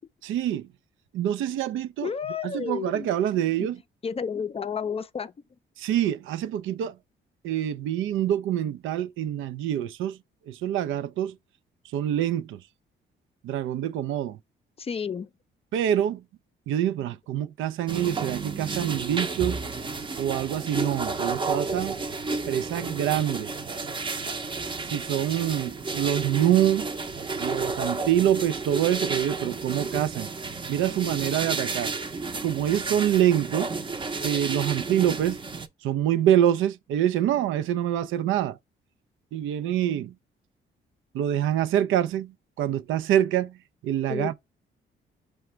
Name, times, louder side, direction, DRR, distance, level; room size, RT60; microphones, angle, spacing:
voice 1, 0.2-0.7 1.1-2.1 2.4-3.8 5.8-7.0 7.4-10.2 10.5-11.4 11.9-12.6 13.4-14.4 15.7-16.2 16.7-19.6 20.2-22.0 22.5-23.5 24.8-26.9 27.4-30.3 30.7-31.9 32.4-33.7 34.2-35.4 35.8-38.6 39.3-40.1 41.1-43.6 43.8-44.3, right 11 dB, 80° right, 0.5 m, -25 dB
voice 2, 2.0-3.1 3.6-3.7 4.0-5.3 14.8-15.3 44.1-44.3, left 6 dB, 30° left, 0.4 m, -31 dB
sound 1, 17.9-35.7, right 3 dB, 25° right, 0.6 m, -32 dB
4.9 x 2.2 x 4.3 m
cardioid pair, 90°, 20 cm